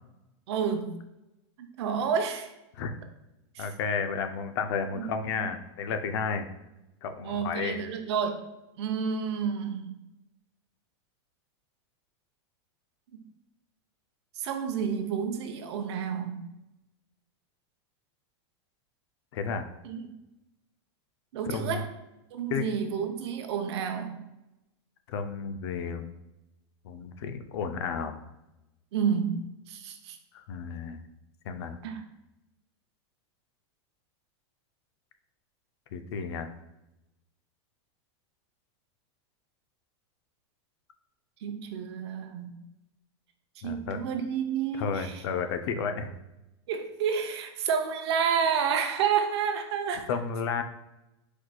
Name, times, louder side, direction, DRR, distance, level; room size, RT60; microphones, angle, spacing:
voice 1, 0.5-1.0 1.6-2.5 3.5-3.7 4.9-5.5 7.2-8.5 8.8-9.9 13.1-13.2 14.3-16.4 19.8-20.0 21.3-21.9 22.3-24.2 28.9-30.2 31.8-32.0 41.4-42.5 43.6-45.2 46.7-50.1, right 7 dB, 65° right, 6 dB, 0.6 m, -30 dB
voice 2, 3.6-6.5 7.0-7.8 19.3-19.7 21.5-21.8 22.5-22.6 25.1-26.1 26.8-28.2 30.3-31.0 31.5-31.8 35.9-36.5 43.6-44.0 44.8-46.1 50.1-50.6, left 5 dB, 65° left, 8 dB, 0.5 m, -32 dB
4.6 x 4.0 x 2.2 m, 0.95 s
supercardioid pair, 165°, 15 cm